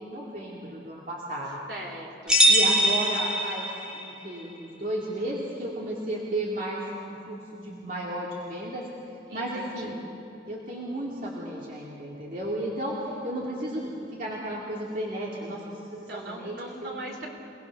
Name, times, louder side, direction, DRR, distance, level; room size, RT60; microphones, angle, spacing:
voice 1, 0.0-1.6 2.5-3.7 3.9-8.8 9.3-10.1 10.5-13.9 14.2-16.5 16.8-17.0, right 1 dB, 50° right, -4 dB, 2.5 m, -33 dB
voice 2, 1.7-2.4 9.3-10.0 16.1-17.3, right 1 dB, 65° right, 1 dB, 3.7 m, -39 dB
sound 1, 2.3-4.1, right 1 dB, 5° right, 2.0 m, -22 dB
28.5 x 19.0 x 6.0 m, 2.8 s
head